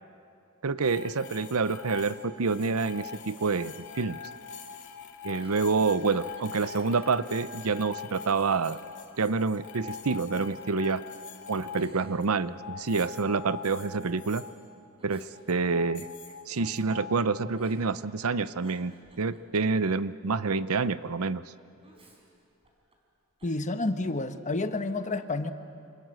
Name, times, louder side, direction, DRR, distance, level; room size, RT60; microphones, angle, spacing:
voice 1, 0.6-4.2 5.2-8.8 9.2-11.0 11.5-14.4 15.0-16.1 16.5-21.4, right 4 dB, 85° right, 15 dB, 0.7 m, -28 dB
sound 1, 0.8-14.5 15.3-17.9, left 6 dB, 60° left, 2.5 m, -43 dB
Giggle, 5.3-7.2 7.6-7.7 8.2-8.9 9.3-10.1 10.8-11.2 11.7-13.0 13.2-13.3 13.6-14.0 14.8-16.3 16.6-16.9 17.5-18.0 18.4-19.8 21.8-22.9 23.4-23.7, right 1 dB, 25° right, 4.4 m, -57 dB
voice 2, 23.4-25.5, left 2 dB, 35° left, 9 dB, 1.2 m, -30 dB
27.5 x 27.0 x 7.7 m, 2.5 s
head